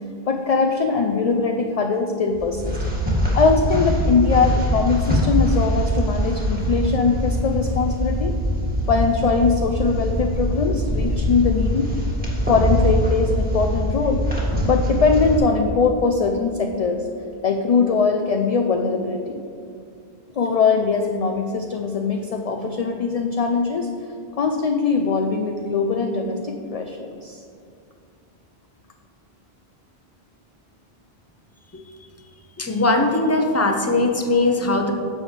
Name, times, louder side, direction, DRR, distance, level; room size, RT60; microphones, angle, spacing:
voice 1, 0.3-2.8 3.3-8.3 8.9-11.9 12.5-17.1 17.4-19.4 20.4-23.9 24.4-27.4, left 4 dB, 50° left, 4 dB, 0.5 m, -21 dB
sound 1, 2.3-15.4, equal, 10° right, 1.8 m, -23 dB
voice 2, 32.6-34.9, left 2 dB, 15° left, 3 dB, 0.7 m, -20 dB
10.5 x 7.1 x 3.2 m, 2.5 s
omnidirectional pair, 1.1 m